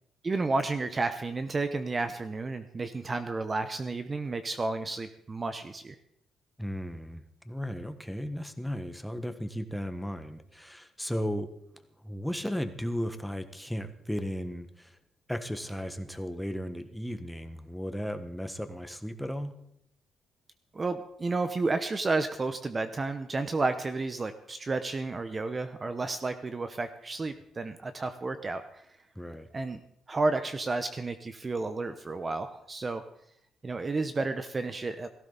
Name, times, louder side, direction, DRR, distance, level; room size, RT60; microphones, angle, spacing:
voice 1, 0.2-6.0 20.7-28.8 29.5-29.8 30.1-33.0 33.6-35.1, right 3 dB, 30° right, 9 dB, 0.9 m, -31 dB
voice 2, 6.6-11.5 12.0-15.0 15.3-19.5 29.1-29.5, equal, ahead, 8 dB, 1.4 m, -35 dB
17.0 x 14.5 x 4.0 m, 0.74 s
cardioid pair, 90°, 0 cm